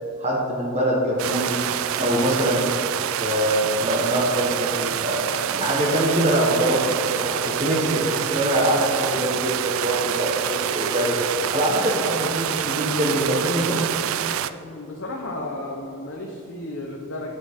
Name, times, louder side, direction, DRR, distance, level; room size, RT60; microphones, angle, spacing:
voice 1, 0.2-1.6 2.0-2.6 3.2-11.2 11.5-13.9, right 1 dB, 30° right, -3 dB, 1.0 m, -23 dB
sound 1, 1.2-14.5, right 10 dB, 65° right, 0.3 m, -27 dB
voice 2, 1.9-2.2 14.6-17.3, left 2 dB, 55° left, -1 dB, 0.8 m, -34 dB
9.6 x 8.3 x 3.5 m, 2.7 s
head